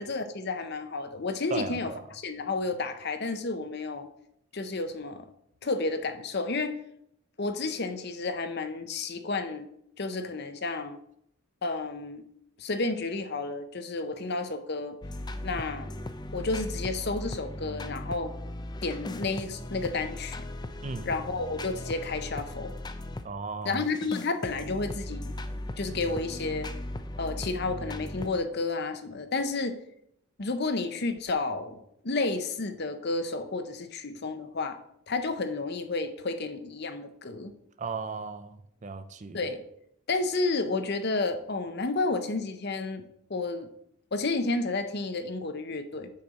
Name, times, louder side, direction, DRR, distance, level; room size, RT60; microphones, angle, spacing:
voice 1, 0.0-4.1 4.5-5.3 5.6-6.8 7.4-9.7 10.0-11.0 11.6-12.2 12.6-15.0 15.4-15.9 16.3-18.3 18.8-20.5 21.0-22.7 23.6-25.3 25.8-26.7 27.2-29.8 30.4-34.8 35.1-37.5 39.3-39.6 40.1-43.7 44.1-46.1, left 3 dB, 50° left, 0.8 m, -31 dB
voice 2, 1.5-2.0 20.8-21.1 23.2-23.8 37.8-39.4, right 4 dB, 35° right, 0.5 m, -36 dB
sound 1, 15.0-23.3 23.8-28.4, left 1 dB, 20° left, 0.5 m, -38 dB
8.5 x 4.5 x 6.4 m
head